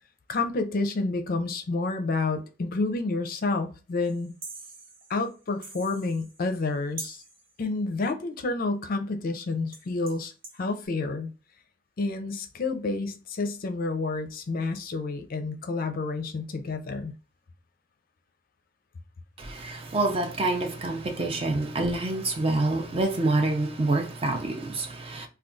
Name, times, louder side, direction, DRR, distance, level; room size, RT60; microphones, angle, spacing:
voice 1, 0.3-4.3 5.1-7.2 7.6-11.3 12.0-17.1, left 3 dB, 50° left, 0.5 m, -29 dB
sound 1, 4.0-6.7 7.0-7.5 9.4-9.5 9.7-10.6, right 3 dB, 90° right, 1.0 m, -44 dB
voice 2, 19.4-25.3, right 2 dB, 30° right, 0.5 m, -27 dB
2.3 x 2.3 x 3.7 m
head